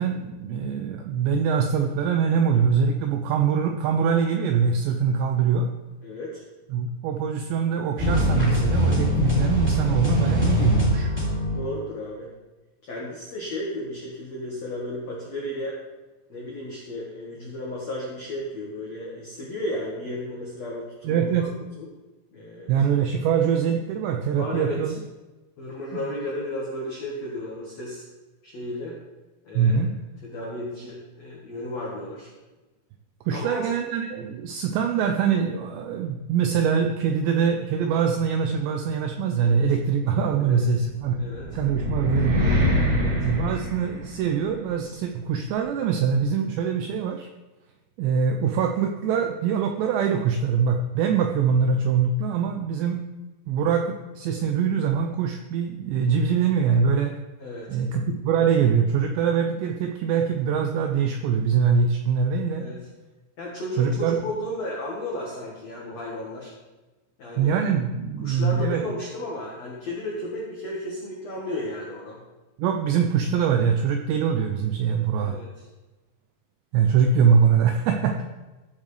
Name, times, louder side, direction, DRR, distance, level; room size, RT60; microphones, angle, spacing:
voice 1, 0.0-5.7 6.7-11.1 21.0-21.5 22.7-24.9 29.5-29.9 33.3-41.3 41.5-42.5 43.2-47.3 48.0-53.0 53.5-57.2 57.7-62.6 63.8-64.3 67.4-68.8 72.6-75.4 76.7-78.2, right 6 dB, 85° right, 4 dB, 2.5 m, -23 dB
voice 2, 6.0-6.4 11.4-12.3 12.8-15.8 16.3-21.5 21.8-21.9 22.3-22.9 24.4-24.9 25.6-28.0 28.4-29.0 29.4-29.8 30.2-32.3 33.3-33.7 39.5-39.6 40.4-40.6 41.2-41.4 42.9-43.2 57.4-57.8 62.6-62.8 63.4-66.5 67.2-67.6 68.2-72.2 75.2-75.7, left 1 dB, 90° left, -4 dB, 1.5 m, -34 dB
sound 1, 8.0-11.7, left 1 dB, 5° right, 1.2 m, -22 dB
sound 2, 41.0-44.4, left 1 dB, 65° right, 4.6 m, -25 dB
15.0 x 7.3 x 3.3 m, 1.1 s
omnidirectional pair, 5.7 m